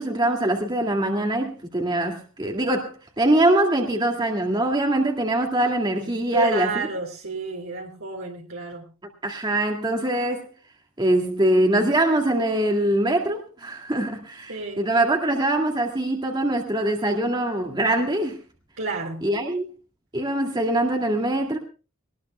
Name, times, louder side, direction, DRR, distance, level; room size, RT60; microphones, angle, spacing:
voice 1, 0.0-6.7 9.2-10.4 11.0-18.4 19.2-19.7 20.1-21.6, right 1 dB, 20° right, 2 dB, 2.2 m, -23 dB
voice 2, 6.3-8.9 14.5-14.9 18.8-19.3, right 3 dB, 65° right, 1 dB, 3.5 m, -30 dB
22.0 x 19.5 x 2.2 m, 0.34 s
head